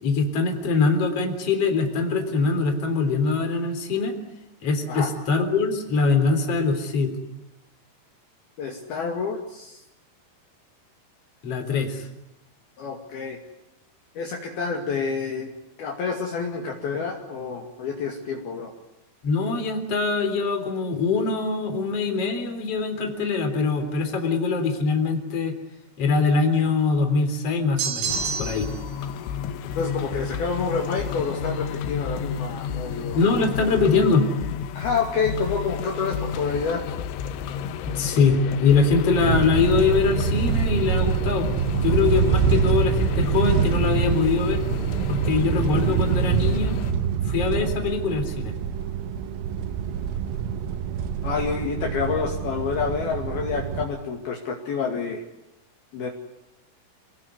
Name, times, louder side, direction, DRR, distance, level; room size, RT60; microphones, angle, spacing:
voice 1, 0.0-4.2 4.6-7.1 11.4-12.1 19.2-25.5 26.0-28.7 33.1-34.3 37.9-41.5 41.8-44.6 45.1-46.8 47.3-48.5, left 4 dB, 35° left, 6 dB, 4.1 m, -23 dB
voice 2, 8.6-9.8 12.8-13.4 14.2-15.5 15.8-18.7 29.8-33.2 34.7-36.8 51.2-55.2 55.9-56.1, left 5 dB, 55° left, 1 dB, 3.9 m, -28 dB
sound 1, 27.8-28.8, right 6 dB, 60° right, 5.8 m, -28 dB
sound 2, 28.1-46.9, left 7 dB, 80° left, 3.6 m, -31 dB
sound 3, 39.2-53.9, right 7 dB, 80° right, 3.9 m, -25 dB
28.0 x 20.5 x 9.6 m, 0.92 s
omnidirectional pair, 5.5 m